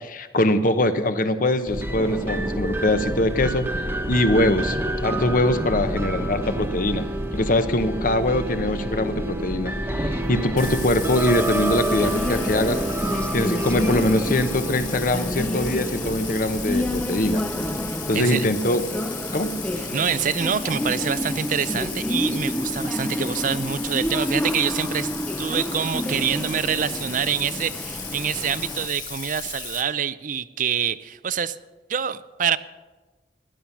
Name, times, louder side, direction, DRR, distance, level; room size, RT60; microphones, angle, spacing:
voice 1, 0.0-3.7 4.1-7.1 7.3-12.8 13.3-17.4 18.1-18.9 19.3-19.6, left 1 dB, 50° left, 9 dB, 1.0 m, -23 dB
sound 1, 1.7-18.2, right 1 dB, 10° right, 1.1 m, -29 dB
sound 2, 10.2-28.9, left 1 dB, 10° left, 0.5 m, -29 dB
Bathtub (filling or washing), 10.6-29.8, left 5 dB, 25° left, 2.0 m, -36 dB
voice 2, 18.1-18.5 19.8-25.1 25.4-31.6 31.9-32.6, right 7 dB, 50° right, 15 dB, 0.4 m, -26 dB
16.0 x 11.5 x 5.9 m, 1.2 s
head